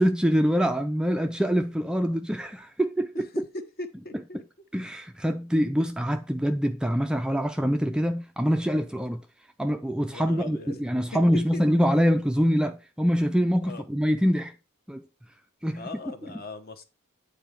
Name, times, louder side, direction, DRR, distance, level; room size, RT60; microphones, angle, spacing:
voice 1, 0.0-3.3 4.7-9.2 9.6-14.5 14.9-15.0 15.6-16.1, equal, 5° right, 0.3 m, -25 dB
voice 2, 3.8-4.4 10.1-10.8 11.5-11.6 13.6-13.8 15.8-16.8, left 2 dB, 45° left, 1.1 m, -40 dB
9.1 x 4.0 x 5.1 m
head